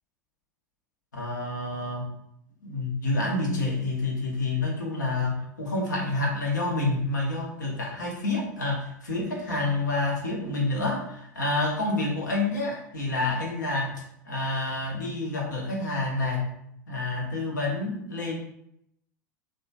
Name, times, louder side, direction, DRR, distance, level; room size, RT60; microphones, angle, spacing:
voice 1, 1.1-2.1 2.6-16.4 16.9-18.4, left 2 dB, 80° left, -2 dB, 0.8 m, -28 dB
2.9 x 2.2 x 2.7 m, 0.74 s
figure-of-eight pair, 80°, 10 cm